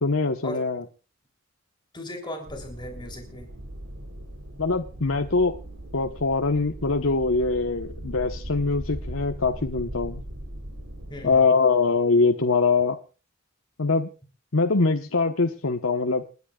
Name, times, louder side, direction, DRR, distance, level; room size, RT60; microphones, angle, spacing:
voice 1, 0.0-0.8 4.6-5.5 5.9-10.2 11.2-13.0 13.8-14.1 14.5-16.2, left 4 dB, 75° left, 5 dB, 1.1 m, -23 dB
voice 2, 1.9-3.5 11.1-11.5, left 1 dB, 20° left, 3 dB, 3.2 m, -37 dB
sound 1, 2.5-11.4, right 1 dB, 85° right, 3.6 m, -39 dB
29.0 x 10.5 x 2.4 m, 0.34 s
head